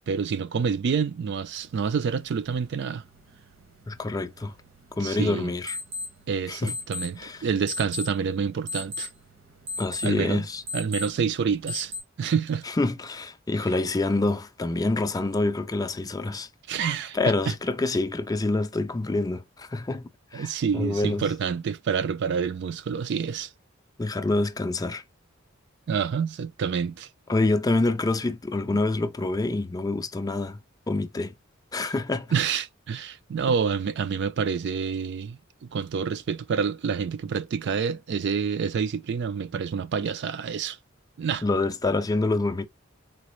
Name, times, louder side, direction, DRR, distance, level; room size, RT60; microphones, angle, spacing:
voice 1, 0.0-3.0 5.0-5.5 6.3-9.1 10.0-10.5 10.7-11.9 12.2-12.6 16.7-17.2 20.3-23.5 25.9-27.1 32.3-40.8 41.2-41.4, right 6 dB, 55° right, 0.4 m, -28 dB
sound 1, 1.6-12.0, left 2 dB, 70° right, 1.0 m, -39 dB
voice 2, 3.9-4.5 5.0-5.8 6.5-6.7 7.2-7.5 9.8-10.6 12.7-16.5 17.1-21.3 24.0-25.0 27.3-30.6 30.9-31.3 31.7-32.3 41.4-42.7, left 2 dB, 20° left, 0.4 m, -26 dB
4.0 x 2.4 x 3.0 m
head